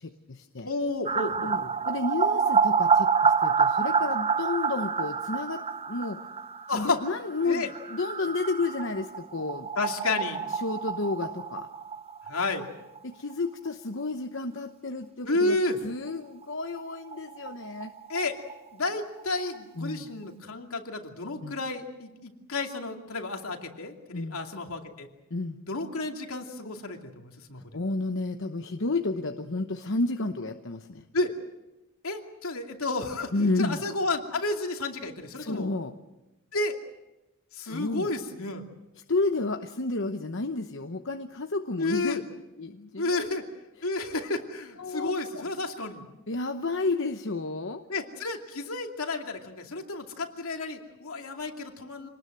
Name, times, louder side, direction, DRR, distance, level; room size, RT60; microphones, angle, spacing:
voice 1, 0.0-0.7 1.4-6.2 6.7-9.7 10.5-11.7 13.0-15.6 15.8-17.9 19.8-20.1 21.4-21.6 24.1-24.4 25.3-25.6 27.7-31.0 33.3-33.8 35.4-35.9 37.6-38.1 39.1-42.2 42.6-43.2 44.8-45.5 46.3-47.8, left 3 dB, 60° left, 6 dB, 1.0 m, -31 dB
voice 2, 0.6-1.7 6.7-7.0 7.4-7.7 9.8-10.4 12.3-12.7 15.3-15.8 18.1-18.4 18.7-25.1 25.7-27.6 31.1-31.3 32.0-33.3 33.6-35.7 36.5-36.8 37.5-38.6 41.8-42.2 43.0-43.5 43.8-46.0 47.9-52.1, left 2 dB, 75° left, 3 dB, 2.6 m, -31 dB
sound 1, 1.1-12.6 13.0-13.1 13.3-13.4 16.4-16.5 16.8-16.9 17.1-18.9 19.2-19.3, right 6 dB, 25° right, 0.7 m, -28 dB
26.0 x 19.5 x 7.8 m, 1.0 s
head